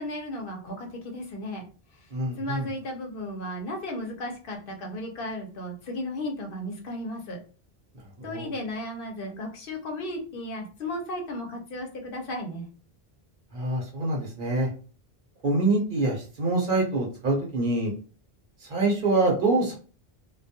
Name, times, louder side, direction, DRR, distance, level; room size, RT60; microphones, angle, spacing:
voice 1, 0.0-1.6 2.0-2.1 2.4-7.4 8.2-12.7, left 1 dB, 65° left, 2 dB, 0.7 m, -35 dB
voice 2, 2.1-2.7 8.2-8.5 13.5-14.7 15.4-17.9 18.6-19.8, right 2 dB, 55° right, -2 dB, 0.9 m, -25 dB
2.2 x 2.2 x 2.7 m, 0.39 s
omnidirectional pair, 1.0 m